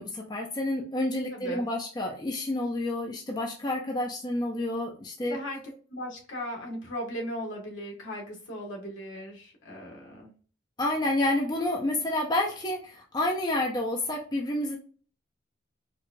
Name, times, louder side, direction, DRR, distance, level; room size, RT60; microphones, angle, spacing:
voice 1, 0.0-5.4 10.8-14.8, left 1 dB, 20° left, 0 dB, 0.5 m, -29 dB
voice 2, 1.3-1.6 5.3-5.6 5.9-10.3, equal, 75° left, 0 dB, 1.4 m, -37 dB
4.6 x 2.4 x 2.5 m, 0.40 s
head